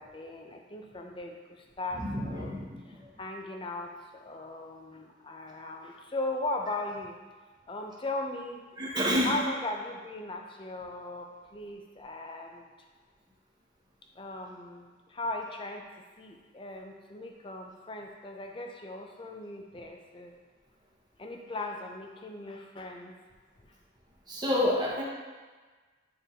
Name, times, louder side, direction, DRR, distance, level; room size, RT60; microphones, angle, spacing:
voice 1, 0.0-7.2 7.7-8.6 9.2-12.6 14.1-20.3 21.2-23.2 23.6-23.7, left 2 dB, 25° left, 3 dB, 0.5 m, -38 dB
voice 2, 1.9-3.1 8.8-9.4 24.3-25.0, left 1 dB, 20° right, -4 dB, 1.0 m, -29 dB
8.9 x 3.8 x 2.8 m, 1.4 s
head